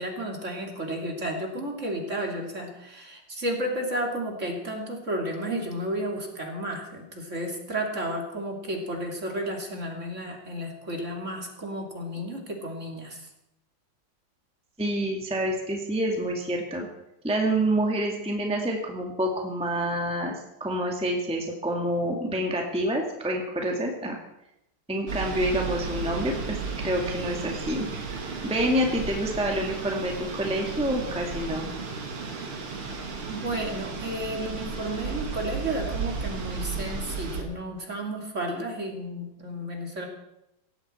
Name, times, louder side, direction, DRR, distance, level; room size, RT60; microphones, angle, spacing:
voice 1, 0.0-13.3 33.3-40.1, right 1 dB, 35° right, 1 dB, 2.8 m, -32 dB
voice 2, 14.8-16.9 17.2-20.3 20.6-24.2 24.9-27.9 28.4-31.7, right 1 dB, 5° right, 0 dB, 1.8 m, -27 dB
sound 1, 25.1-37.4, right 4 dB, 90° right, 2.9 m, -34 dB
18.0 x 15.5 x 4.4 m, 0.85 s
omnidirectional pair, 2.3 m